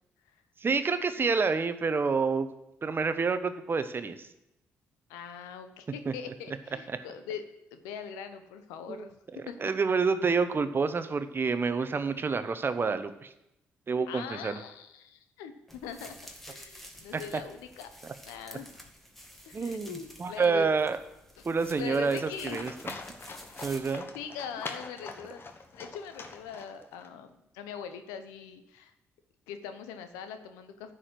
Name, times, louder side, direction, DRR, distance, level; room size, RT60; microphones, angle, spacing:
voice 1, 0.6-2.5 2.8-4.3 6.1-6.2 8.9-9.1 9.6-13.3 13.9-14.6 17.1-17.2 19.5-21.0 21.4-22.9 23.6-24.1, right 4 dB, 40° right, 10 dB, 1.0 m, -28 dB
voice 2, 5.1-7.4 7.7-9.1 9.5-9.6 14.1-16.2 16.5-17.9 18.2-18.9 19.4-20.7 21.4-21.5 21.8-22.6 24.1-25.4 25.7-28.9 29.5-30.9, left 7 dB, 85° left, 9 dB, 0.8 m, -41 dB
sound 1, 15.7-24.0, equal, 5° left, 1.8 m, -51 dB
Livestock farm animals working animals, 22.1-27.1, left 4 dB, 40° left, 1.3 m, -43 dB
10.0 x 5.0 x 7.6 m, 0.85 s
hypercardioid pair, 50°, 6 cm